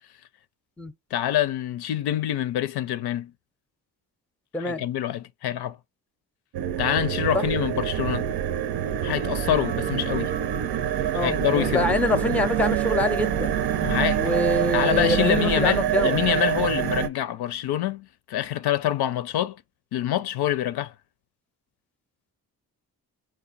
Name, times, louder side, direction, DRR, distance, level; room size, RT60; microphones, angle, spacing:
voice 1, 1.1-3.3 4.6-5.8 6.8-8.3 9.0-10.3 11.1-12.0 13.8-14.2 14.7-19.6 19.9-20.9, left 12 dB, 85° left, 0.5 m, -26 dB
sound 1, 6.5-17.1, right 10 dB, 90° right, 0.6 m, -26 dB
voice 2, 11.1-13.7 14.2-16.1, left 1 dB, 5° left, 0.5 m, -25 dB
4.8 x 2.3 x 3.9 m
cardioid pair, 100°, 38 cm